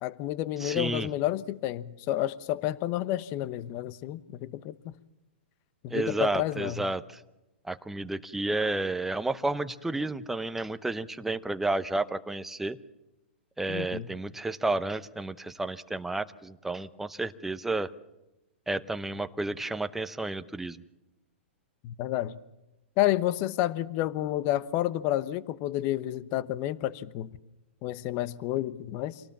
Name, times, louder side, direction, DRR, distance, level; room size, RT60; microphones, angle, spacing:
voice 1, 0.0-4.9 5.8-6.8 13.7-14.1 21.8-22.4 23.0-27.4 27.8-29.2, left 14 dB, 40° left, 17 dB, 1.0 m, -30 dB
voice 2, 0.6-1.1 5.9-7.2 7.6-12.8 13.6-17.9 18.7-20.8, right 2 dB, 5° right, 11 dB, 0.8 m, -31 dB
26.5 x 18.5 x 7.4 m, 0.96 s
hypercardioid pair, 130°, 6 cm